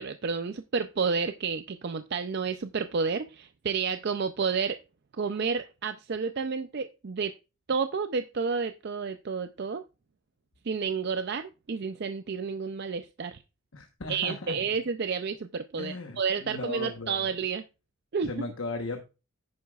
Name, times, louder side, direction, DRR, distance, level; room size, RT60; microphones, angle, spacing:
voice 1, 0.0-4.8 5.1-7.3 7.7-9.8 10.6-13.4 14.1-17.6 18.1-18.5, right 5 dB, 45° right, 9 dB, 0.4 m, -30 dB
voice 2, 13.7-14.6 15.8-17.1 18.3-19.0, left 2 dB, 60° left, 5 dB, 1.1 m, -36 dB
10.5 x 9.4 x 2.4 m, 0.29 s
head